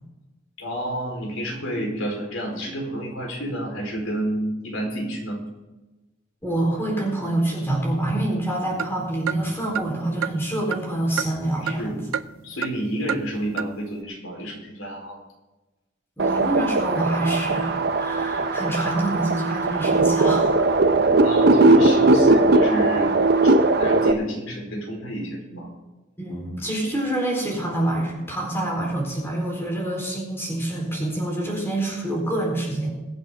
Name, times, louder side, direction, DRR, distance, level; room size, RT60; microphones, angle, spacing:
voice 1, 0.6-5.4 11.6-12.0 12.4-15.2 21.2-23.1 23.4-25.7, right 1 dB, 90° left, 0 dB, 4.7 m, -30 dB
voice 2, 6.4-12.0 16.2-20.7 26.2-32.9, right 1 dB, 10° left, -2 dB, 4.4 m, -26 dB
sound 1, 8.7-11.9 12.1-12.8 13.1-13.2 13.6-13.7, right 7 dB, 85° right, 0.5 m, -30 dB
sound 2, 16.2-24.1, right 2 dB, 50° right, 0.8 m, -19 dB
22.5 x 8.4 x 3.9 m, 1.1 s
head